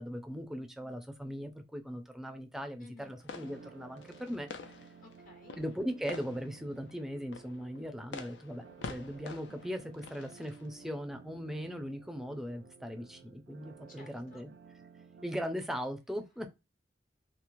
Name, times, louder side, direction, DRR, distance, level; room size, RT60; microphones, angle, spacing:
voice 1, 0.0-4.5 5.6-14.5 15.2-16.5, equal, ahead, 0.4 m, -39 dB
voice 2, 2.8-3.2 5.0-5.6 13.9-14.4, left 3 dB, 50° left, 0.9 m, -56 dB
sound 1, 3.2-10.8, left 4 dB, 75° left, 0.5 m, -48 dB
sound 2, 3.4-15.4, right 5 dB, 85° right, 0.4 m, -55 dB
2.9 x 2.0 x 2.5 m
head